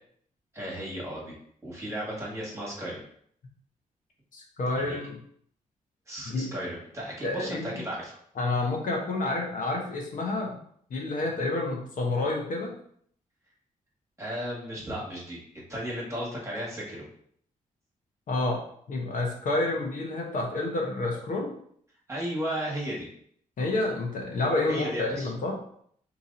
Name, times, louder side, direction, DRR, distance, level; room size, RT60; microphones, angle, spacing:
voice 1, 0.5-1.3 1.6-3.0 4.7-5.0 6.1-8.2 14.2-15.4 15.7-17.0 22.1-23.1 24.7-25.3, equal, 20° right, -5 dB, 1.4 m, -34 dB
voice 2, 4.3-5.2 6.3-6.5 7.2-7.8 8.4-10.6 10.9-12.7 18.3-18.6 18.9-21.5 23.6-25.6, left 2 dB, 65° left, 0 dB, 1.0 m, -29 dB
3.0 x 2.7 x 3.8 m, 0.64 s
cardioid pair, 75°, 14 cm